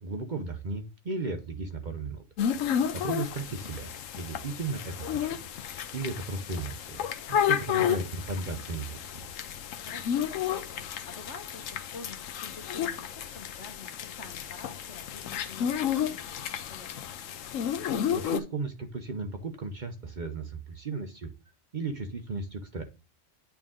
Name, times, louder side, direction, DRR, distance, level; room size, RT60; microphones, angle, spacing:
voice 1, 0.0-2.2 2.7-7.0 7.3-9.3 18.1-21.3 21.7-22.8, right 3 dB, 45° right, 5 dB, 0.8 m, -35 dB
sound 1, 2.4-18.4, left 9 dB, 85° left, 1.1 m, -32 dB
voice 2, 9.8-17.1, left 4 dB, 65° left, 5 dB, 1.6 m, -48 dB
8.8 x 3.7 x 3.6 m, 0.31 s
omnidirectional pair, 1.3 m